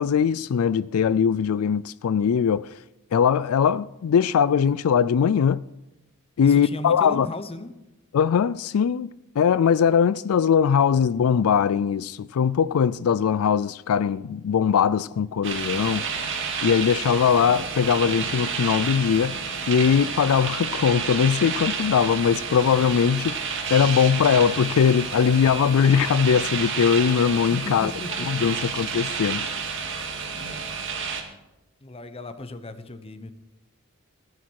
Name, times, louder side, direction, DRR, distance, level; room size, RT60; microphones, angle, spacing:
voice 1, 0.0-2.7 3.1-5.6 6.4-7.3 8.1-16.1 16.6-19.4 19.7-27.9 28.3-29.4, left 7 dB, 85° left, 0.4 m, -21 dB
voice 2, 6.4-7.7 27.5-28.5 31.8-33.3, left 2 dB, 25° left, 1.0 m, -36 dB
sound 1, 15.4-31.2, right 5 dB, 60° right, 2.2 m, -30 dB
15.5 x 10.5 x 4.7 m
head